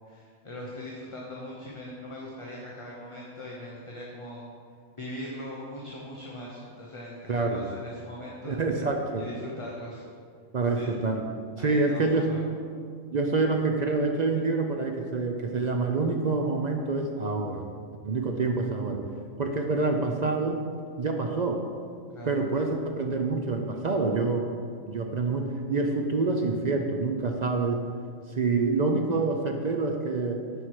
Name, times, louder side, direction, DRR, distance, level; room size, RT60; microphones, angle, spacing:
voice 1, 0.0-4.5 4.9-8.6 9.1-10.0 10.7-11.1 11.6-12.4 22.1-22.4, left 1 dB, 25° left, -4 dB, 0.8 m, -41 dB
voice 2, 7.3-7.7 8.4-9.2 10.5-11.2 11.6-12.3 13.1-17.6 18.0-19.0 19.4-20.6 21.0-21.6 22.3-24.5 24.8-27.8 28.3-30.4, right 3 dB, 55° right, 3 dB, 0.5 m, -27 dB
10.0 x 4.7 x 4.7 m, 2.2 s
omnidirectional pair, 1.4 m